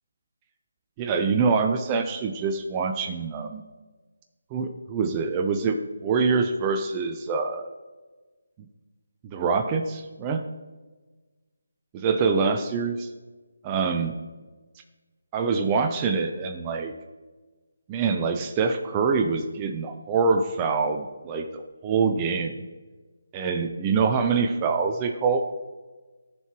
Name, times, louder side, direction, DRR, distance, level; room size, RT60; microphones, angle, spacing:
voice 1, 1.0-3.6 4.5-7.7 9.2-10.4 11.9-13.1 13.6-14.2 15.3-16.9 17.9-22.6 23.3-25.4, right 5 dB, 20° right, 5 dB, 0.4 m, -25 dB
13.5 x 4.6 x 3.0 m, 1.3 s
figure-of-eight pair, 155°, 0 cm